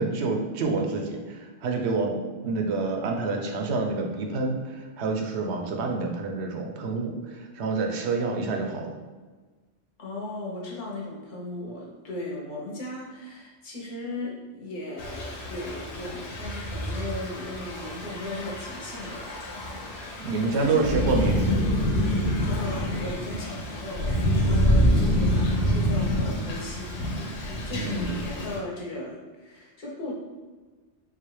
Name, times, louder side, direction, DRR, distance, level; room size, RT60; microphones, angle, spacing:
voice 1, 0.0-2.2 2.4-9.0 20.2-21.4 27.8-28.2, right 3 dB, 75° right, 2 dB, 0.8 m, -28 dB
voice 2, 10.0-19.6 20.1-20.9 21.9-27.3 27.6-30.1, left 2 dB, 50° left, -3 dB, 0.9 m, -37 dB
Thunder / Rain, 15.0-28.6, equal, 70° left, 1.0 m, -27 dB
3.9 x 2.4 x 3.1 m, 1.3 s
omnidirectional pair, 1.2 m